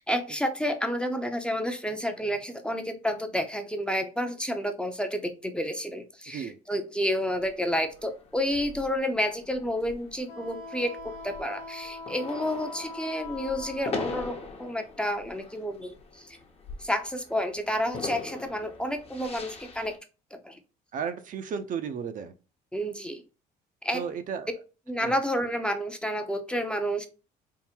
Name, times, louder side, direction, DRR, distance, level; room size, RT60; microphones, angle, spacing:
voice 1, 0.0-16.4 16.8-20.0 20.3-20.6 22.7-23.2 23.8-24.0 24.9-27.1, equal, 5° left, 6 dB, 0.5 m, -30 dB
sound 1, 7.4-20.0, left 3 dB, 35° left, 0.8 m, -42 dB
Wind instrument woodwind instrument, 10.3-14.4, left 3 dB, 85° left, 1.0 m, -42 dB
voice 2, 20.9-22.3 23.9-24.5 25.0-25.2, right 7 dB, 50° right, 9 dB, 0.5 m, -34 dB
3.7 x 2.0 x 4.3 m, 0.33 s
cardioid pair, 110°, 17 cm